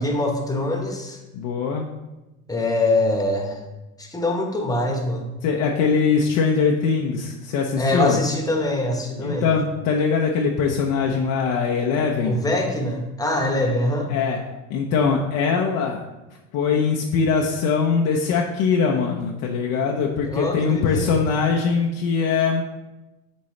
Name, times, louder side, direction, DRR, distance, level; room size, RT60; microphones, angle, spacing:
voice 1, 0.0-1.2 2.5-3.6 4.0-5.3 7.8-9.5 12.2-14.1 20.2-21.2, left 1 dB, 10° left, 2 dB, 1.2 m, -24 dB
voice 2, 1.3-1.9 5.4-8.2 9.2-12.4 14.1-14.4 14.7-16.0 16.5-22.6, left 5 dB, 55° left, 0 dB, 0.9 m, -22 dB
8.4 x 4.6 x 3.2 m, 1.0 s
hypercardioid pair, 95°, 40 cm